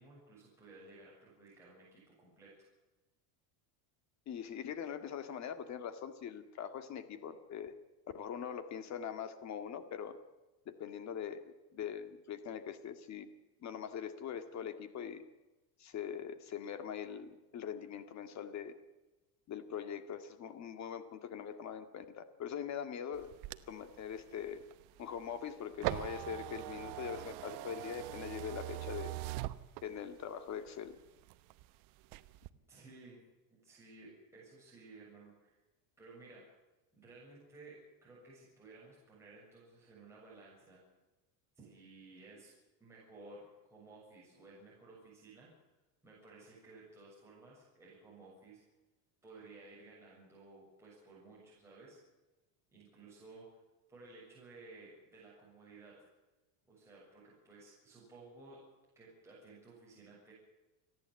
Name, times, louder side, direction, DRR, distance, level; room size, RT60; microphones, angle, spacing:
voice 1, 0.0-2.7 32.7-33.2 33.5-35.6 36.0-36.5 36.9-40.8 41.6-42.5 42.8-45.5 46.0-48.6 49.2-52.0 52.7-53.5 53.9-56.1 56.7-58.7 59.0-60.3, right 3 dB, 5° right, -7 dB, 7.1 m, -56 dB
voice 2, 4.3-7.7 8.1-10.2 10.7-13.3 13.6-15.2 15.8-18.7 19.5-23.3 23.7-24.6 25.0-29.1 29.8-31.0, left 8 dB, 35° left, 10 dB, 1.9 m, -42 dB
sound 1, 23.1-30.2 30.7-31.7 32.0-32.5, right 16 dB, 50° right, 1.0 m, -42 dB
29.5 x 11.0 x 8.2 m, 1.1 s
cardioid pair, 155°, 49 cm